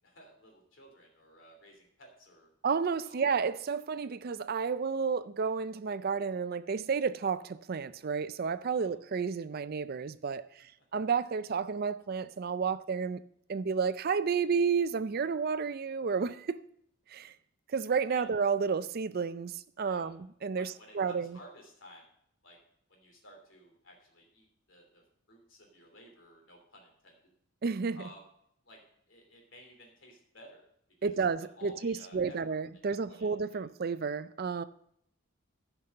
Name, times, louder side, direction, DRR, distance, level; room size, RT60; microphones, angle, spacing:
voice 1, 0.0-2.5 3.0-3.2 8.7-8.9 10.8-10.9 17.3-17.4 18.1-18.3 19.8-20.1 20.5-22.1 22.4-22.6 22.9-25.0 25.3-27.2 27.9-28.3 28.6-28.8 29.1-30.6 31.0-32.6 32.9-33.6, equal, 60° left, 3.0 m, -55 dB
voice 2, 2.6-13.2 13.5-16.6 17.1-17.3 17.7-21.4 27.6-28.0 31.0-34.6, right 5 dB, 45° right, 0.4 m, -31 dB
11.0 x 5.9 x 6.5 m
head